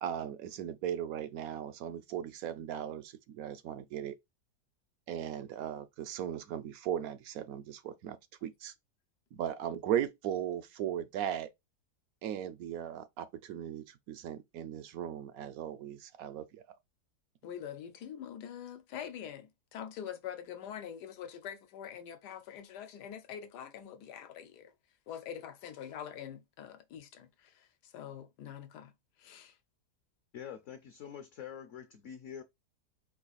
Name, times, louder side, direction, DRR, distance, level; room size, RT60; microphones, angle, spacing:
voice 1, 0.0-4.2 5.1-8.7 9.3-11.5 12.2-16.6, right 10 dB, 70° right, 0.9 m, -37 dB
voice 2, 17.4-24.7 25.1-28.9 29.2-29.6, left 9 dB, 85° left, 1.3 m, -44 dB
voice 3, 30.3-32.4, left 8 dB, 60° left, 0.8 m, -45 dB
4.7 x 2.4 x 3.9 m
omnidirectional pair, 1.7 m